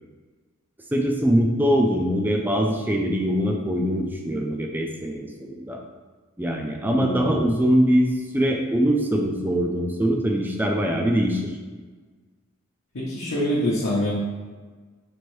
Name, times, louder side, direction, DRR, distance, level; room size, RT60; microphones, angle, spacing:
voice 1, 0.9-5.8 6.4-8.1 8.3-11.5, equal, 10° right, 1 dB, 0.3 m, -22 dB
voice 2, 6.8-7.5 12.9-14.1, left 1 dB, 70° left, -7 dB, 0.8 m, -25 dB
4.4 x 2.6 x 3.1 m, 1.4 s
head